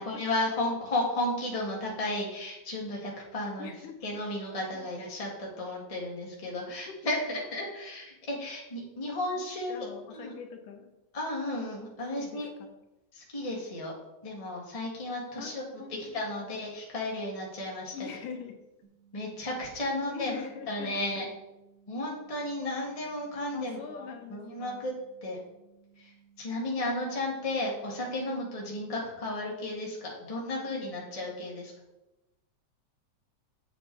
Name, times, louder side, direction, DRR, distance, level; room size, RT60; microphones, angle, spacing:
voice 1, 0.0-3.7 4.0-9.9 10.1-10.3 11.1-12.5 13.1-13.9 14.2-15.6 16.1-17.9 19.1-20.4 20.7-21.3 21.9-24.9 25.2-25.4 26.0-26.1 26.4-31.7, left 1 dB, 15° left, -3 dB, 1.5 m, -33 dB
voice 2, 3.6-4.0 6.9-7.1 9.4-10.9 12.2-12.7 15.4-15.5 15.8-16.2 17.9-18.6 20.1-20.9 23.5-24.8, left 7 dB, 85° left, 4 dB, 2.6 m, -43 dB
sound 1, 18.8-28.8, right 8 dB, 60° right, 3.3 m, -62 dB
8.1 x 7.7 x 4.2 m, 0.96 s
omnidirectional pair, 3.6 m